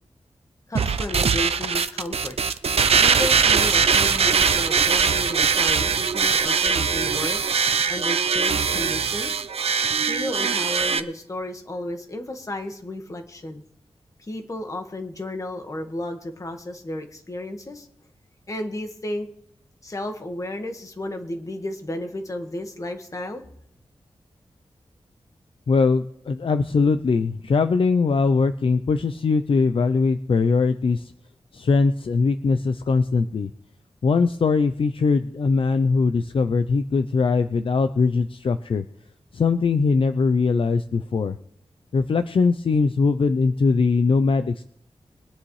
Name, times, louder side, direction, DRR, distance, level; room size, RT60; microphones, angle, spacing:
voice 1, 0.7-2.3 3.0-7.4 7.9-9.4 10.0-13.6 14.2-17.9 18.5-19.3 19.8-23.4, left 1 dB, 30° left, 5 dB, 1.6 m, -33 dB
sound 1, 0.8-11.0, right 6 dB, 80° right, 0.7 m, -21 dB
voice 2, 25.7-31.1 31.5-33.5 34.0-38.8 39.3-41.4 41.9-44.6, left 4 dB, 60° left, 10 dB, 0.5 m, -21 dB
22.5 x 9.9 x 3.2 m, 0.72 s
wide cardioid pair, 130°, 10 cm